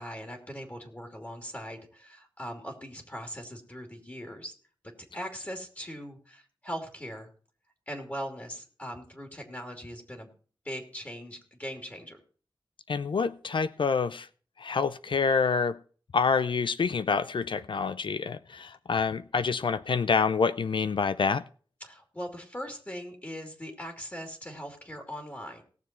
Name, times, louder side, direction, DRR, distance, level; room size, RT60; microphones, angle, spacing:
voice 1, 0.0-4.5 5.1-7.3 7.9-10.3 10.6-12.2 21.8-25.6, equal, 20° left, 2.7 m, -40 dB
voice 2, 12.9-14.3 14.6-15.8 16.1-21.4, left 5 dB, 75° left, 0.5 m, -27 dB
18.5 x 7.1 x 4.4 m
wide cardioid pair, 95°, 9 cm